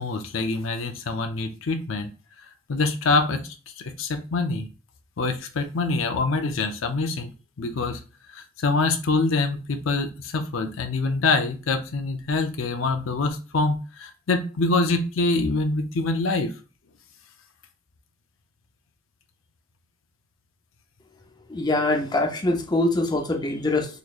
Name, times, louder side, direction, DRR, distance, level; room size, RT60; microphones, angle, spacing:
voice 1, 0.0-2.1 2.7-3.4 4.0-4.7 5.2-8.0 8.3-16.5, left 3 dB, 85° left, 6 dB, 0.6 m, -25 dB
voice 2, 21.5-23.9, left 2 dB, 20° left, 2 dB, 0.6 m, -23 dB
4.0 x 3.0 x 2.4 m, 0.34 s
head